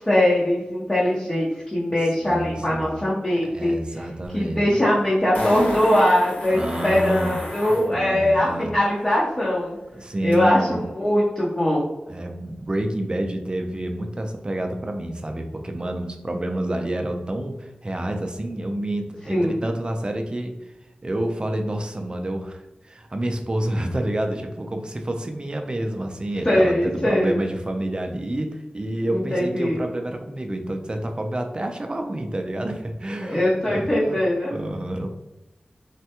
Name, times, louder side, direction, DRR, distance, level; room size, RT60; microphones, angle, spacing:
voice 1, 0.1-3.7 4.3-9.8 10.2-11.9 19.3-19.6 26.4-27.4 29.1-29.8 33.2-34.5, left 1 dB, 25° left, -7 dB, 0.8 m, -21 dB
voice 2, 2.2-3.0 3.4-4.6 6.5-7.4 7.9-8.7 9.9-10.9 12.1-20.5 21.0-34.2 34.5-35.1, right 1 dB, 30° right, 4 dB, 0.4 m, -28 dB
Fart, 4.2-4.3 5.3-7.9 10.3-10.4, left 1 dB, 65° left, 1.4 m, -30 dB
3.3 x 2.2 x 2.8 m, 1.0 s
wide cardioid pair, 55°, 3 cm